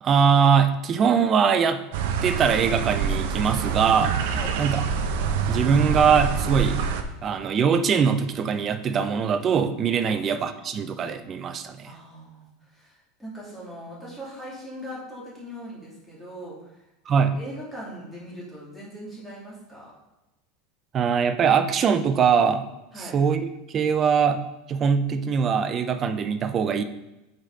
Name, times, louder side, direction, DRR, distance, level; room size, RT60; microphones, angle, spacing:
voice 1, 0.0-1.8 2.2-4.1 4.6-4.8 5.5-6.8 7.2-11.9 17.1-17.4 20.9-22.6 23.0-23.4 23.7-26.8, right 6 dB, 25° right, 10 dB, 0.5 m, -22 dB
sound 1, 1.9-7.0, right 6 dB, 60° right, 0.8 m, -26 dB
voice 2, 11.8-16.7 17.1-19.9 22.9-23.2, equal, 5° left, -7 dB, 2.5 m, -40 dB
6.3 x 5.2 x 5.4 m, 0.96 s
supercardioid pair, 165°, 0 cm